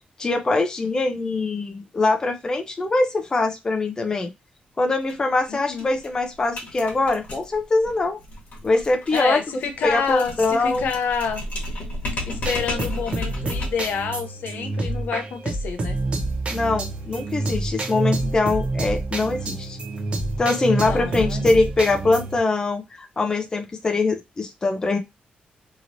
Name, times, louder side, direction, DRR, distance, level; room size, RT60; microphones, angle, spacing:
voice 1, 0.2-4.3 4.8-8.2 8.6-9.4 9.8-10.8 16.5-19.8 20.4-25.0, left 3 dB, 25° left, 0.5 m, -23 dB
sound 1, 5.0-5.1 5.4-5.5 5.8-13.9, left 1 dB, 60° left, 1.2 m, -34 dB
voice 2, 5.5-5.9 9.1-11.4 12.2-16.0 20.7-21.4, left 6 dB, 85° left, 0.6 m, -28 dB
sound 2, 12.4-22.4, right 2 dB, 40° right, 0.7 m, -28 dB
2.9 x 2.8 x 2.6 m
wide cardioid pair, 135°, 3 cm